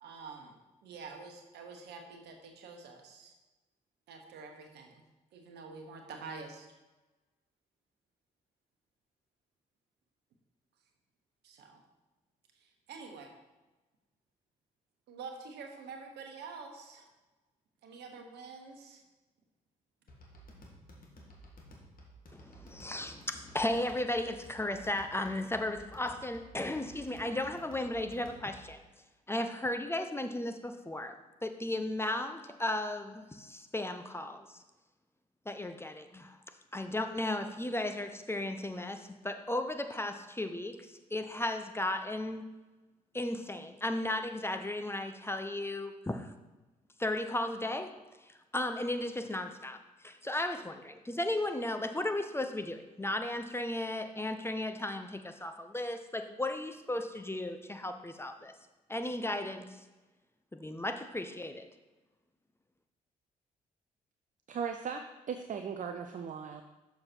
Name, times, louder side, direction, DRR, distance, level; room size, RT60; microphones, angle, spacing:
voice 1, 0.0-3.3 4.1-4.9 5.3-6.7 11.4-11.8 12.5-13.3 15.1-17.1 17.8-19.0, right 4 dB, 70° right, 3 dB, 1.1 m, -47 dB
sound 1, 20.1-28.8, equal, 55° left, 1.7 m, -54 dB
voice 2, 22.3-28.8 29.3-31.1 31.4-34.6 35.5-36.4 36.7-40.8 41.1-42.5 43.1-46.3 47.0-47.9 48.2-58.5 58.9-59.8 60.5-61.7, left 1 dB, 15° left, 7 dB, 0.8 m, -35 dB
voice 3, 64.5-66.6, right 6 dB, 45° right, 7 dB, 0.5 m, -38 dB
6.6 x 5.7 x 4.5 m, 1.1 s
hypercardioid pair, 40°, 18 cm